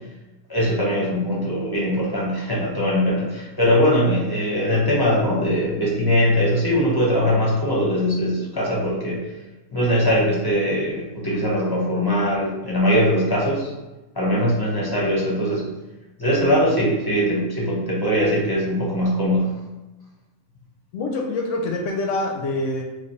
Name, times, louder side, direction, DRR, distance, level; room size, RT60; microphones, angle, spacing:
voice 1, 0.5-9.2 9.7-13.7 14.1-15.6 16.2-19.5, equal, 25° left, -5 dB, 0.6 m, -21 dB
voice 2, 20.9-22.8, left 2 dB, 65° left, 1 dB, 0.8 m, -25 dB
3.2 x 2.3 x 4.2 m, 1.1 s
omnidirectional pair, 1.6 m